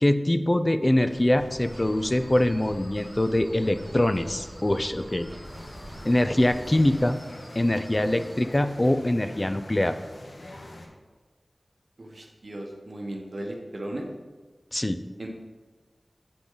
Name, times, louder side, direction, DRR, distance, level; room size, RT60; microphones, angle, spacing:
voice 1, 0.0-5.3 6.0-7.2 7.6-10.0 14.7-15.0, left 1 dB, 30° left, 10 dB, 0.5 m, -23 dB
sound 1, 1.1-7.0, equal, 40° right, 2.5 m, -43 dB
sound 2, 1.5-8.5, equal, 10° left, 1.4 m, -51 dB
sound 3, 5.4-10.9, left 1 dB, 80° left, 1.2 m, -44 dB
voice 2, 12.0-14.1 15.2-15.3, right 1 dB, 60° right, 1 dB, 1.2 m, -36 dB
8.5 x 6.0 x 4.0 m, 1.3 s
wide cardioid pair, 45°, 0 cm